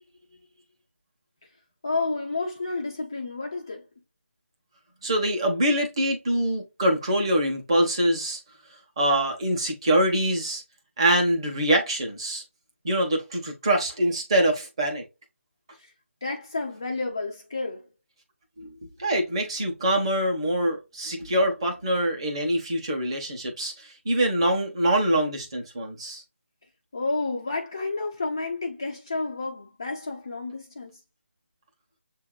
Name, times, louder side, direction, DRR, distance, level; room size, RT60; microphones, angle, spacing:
voice 1, 1.8-3.9 15.7-15.9 16.2-17.9 26.9-31.0, left 3 dB, 15° left, 0.3 m, -30 dB
voice 2, 5.0-8.4 9.0-10.6 11.0-12.4 12.8-15.0 18.6-18.7 19.0-26.2, right 1 dB, 20° right, 1.0 m, -24 dB
7.1 x 2.8 x 2.3 m
figure-of-eight pair, 175°, 8 cm